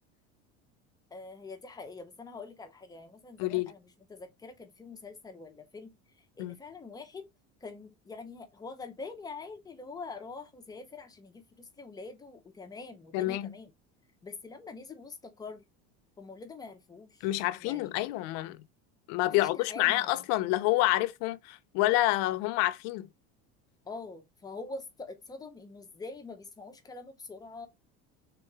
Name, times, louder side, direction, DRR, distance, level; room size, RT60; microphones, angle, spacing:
voice 1, 1.1-7.3 7.6-13.7 14.2-15.6 16.2-17.3 17.6-17.9 19.3-20.2 23.8-27.7, left 3 dB, 15° left, 0.6 m, -45 dB
voice 2, 3.4-3.7 6.4-6.6 13.1-13.5 17.2-18.7 19.1-23.1, left 17 dB, 60° left, 0.6 m, -28 dB
3.7 x 2.8 x 4.7 m
cardioid pair, 165°, 29 cm